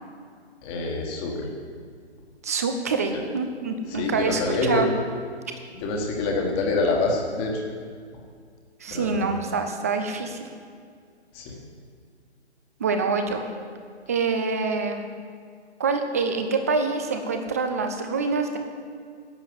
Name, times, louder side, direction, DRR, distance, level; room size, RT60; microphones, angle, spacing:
voice 1, 0.6-1.5 3.9-4.9 5.7-7.6 8.9-9.4 11.3-11.6, left 3 dB, 15° left, 0 dB, 1.6 m, -26 dB
voice 2, 2.4-4.9 8.8-10.5 12.8-13.5 14.1-15.0 15.8-18.6, right 4 dB, 15° right, 6 dB, 0.5 m, -26 dB
11.5 x 7.5 x 7.9 m, 2.1 s
figure-of-eight pair, 140°, 34 cm